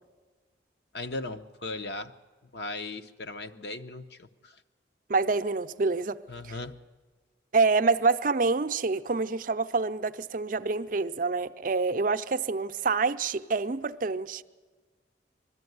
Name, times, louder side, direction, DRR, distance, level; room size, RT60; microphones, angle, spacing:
voice 1, 0.9-2.1 2.5-4.6 6.3-6.8, left 2 dB, 65° left, 0.8 m, -37 dB
voice 2, 5.1-6.2 6.5-6.6 7.5-14.4, right 4 dB, 45° right, 0.5 m, -27 dB
20.5 x 13.5 x 9.4 m
head